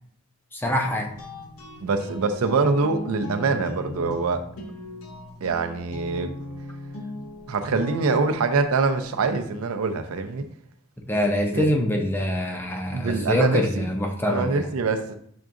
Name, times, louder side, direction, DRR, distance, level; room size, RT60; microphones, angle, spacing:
voice 1, 0.5-1.1 11.1-14.7, equal, 10° left, 2 dB, 0.5 m, -24 dB
sound 1, 0.8-9.7, left 1 dB, 80° left, 0.8 m, -38 dB
voice 2, 1.8-4.4 5.4-6.3 7.5-10.4 11.5-11.8 12.9-13.9 14.3-15.2, right 4 dB, 75° right, 7 dB, 0.5 m, -24 dB
5.9 x 3.6 x 2.5 m, 0.67 s
head